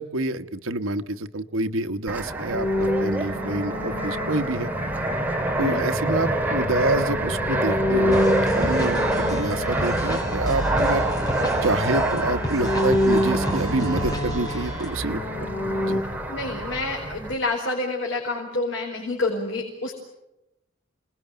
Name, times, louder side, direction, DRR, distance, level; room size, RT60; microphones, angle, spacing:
voice 1, 0.0-4.7 5.6-8.2 8.5-11.0 11.6-16.0, right 2 dB, 85° right, 8 dB, 1.2 m, -27 dB
Fixed-wing aircraft airplane, 2.1-17.3, right 1 dB, 10° right, 2.2 m, -27 dB
sound 1, 2.5-5.4 6.1-10.9 11.2-16.0, left 1 dB, 45° left, 6.6 m, -28 dB
sound 2, 8.1-15.0, equal, 20° left, 5.2 m, -32 dB
voice 2, 16.3-19.9, left 2 dB, 65° left, 0 dB, 4.6 m, -28 dB
28.0 x 20.5 x 9.1 m, 0.93 s
head